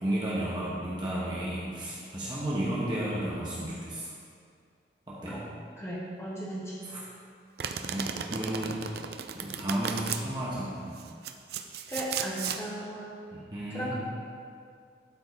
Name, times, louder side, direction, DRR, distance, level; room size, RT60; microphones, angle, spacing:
voice 1, 0.0-4.1 5.1-5.4 6.8-7.0 7.8-8.8 9.3-10.9 13.3-13.9, right 1 dB, 25° right, -7 dB, 1.1 m, -33 dB
voice 2, 5.8-6.8 11.9-13.1 13.7-13.9, equal, 15° left, -6 dB, 1.7 m, -36 dB
Domestic sounds home sounds, 7.6-10.2 11.0-12.6, right 7 dB, 60° right, 0.5 m, -35 dB
12.0 x 5.3 x 4.1 m, 2.3 s
head